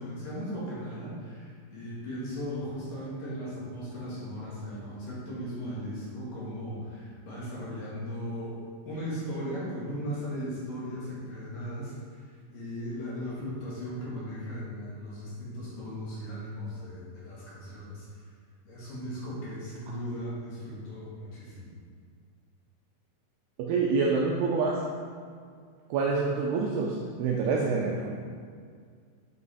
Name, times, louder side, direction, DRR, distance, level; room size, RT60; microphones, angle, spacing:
voice 1, 0.0-8.6 8.8-18.2 18.7-21.7, equal, 60° left, -8 dB, 2.7 m, -37 dB
voice 2, 23.6-24.8 25.9-28.1, right 4 dB, 80° right, -2 dB, 2.4 m, -27 dB
8.7 x 5.4 x 4.1 m, 2.1 s
omnidirectional pair, 5.3 m